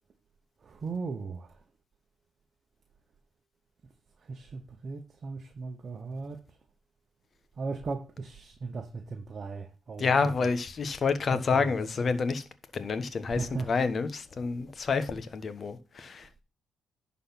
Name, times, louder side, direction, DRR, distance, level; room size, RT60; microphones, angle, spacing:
voice 1, 0.7-1.5 4.3-6.4 7.6-10.0 11.3-11.7 13.4-13.7, right 4 dB, 45° right, 1.0 m, -37 dB
voice 2, 10.0-12.4 12.7-16.3, left 4 dB, 45° left, 1.3 m, -28 dB
11.0 x 4.2 x 5.9 m
cardioid pair, 90°, 0 cm